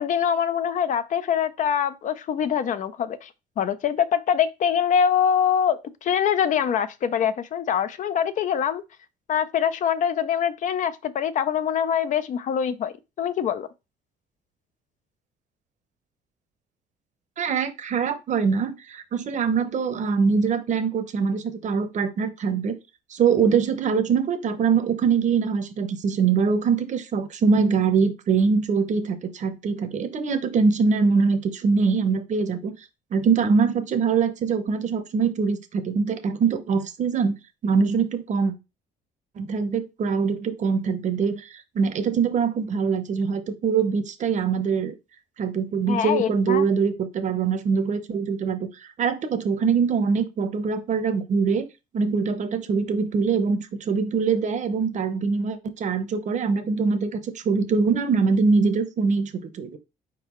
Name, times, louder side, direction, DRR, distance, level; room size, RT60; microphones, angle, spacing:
voice 1, 0.0-3.3 3.6-8.8 9.3-13.7 45.9-46.7, left 8 dB, 50° left, 0.5 m, -24 dB
voice 2, 17.4-22.7 23.1-32.7 33.1-37.3 37.6-38.5 39.4-44.9 45.4-48.7 49.0-51.7 51.9-59.8, right 5 dB, 45° right, 0.7 m, -23 dB
4.5 x 3.7 x 3.0 m
cardioid pair, 110°, 17 cm